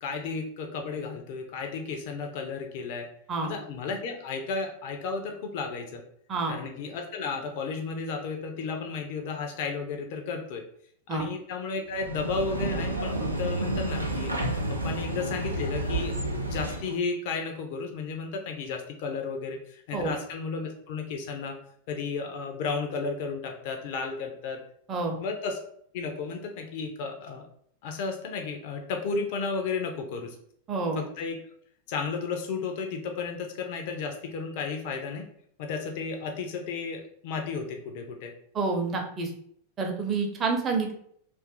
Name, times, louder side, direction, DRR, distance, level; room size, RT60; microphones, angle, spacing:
voice 1, 0.0-3.1 3.4-6.0 6.5-10.6 11.1-14.6 14.8-16.2 16.4-21.6 21.9-24.6 25.2-25.6 25.9-27.5 27.8-30.4 31.0-31.4 31.9-35.3 35.6-38.3, left 4 dB, 50° left, 3 dB, 0.5 m, -33 dB
sound 1, 11.9-17.0, right 1 dB, 85° right, 0.5 m, -30 dB
voice 2, 30.7-31.0 38.5-39.3 39.8-40.9, right 4 dB, 25° right, 3 dB, 0.7 m, -28 dB
2.6 x 2.5 x 3.5 m, 0.66 s
figure-of-eight pair, 90°, 0 cm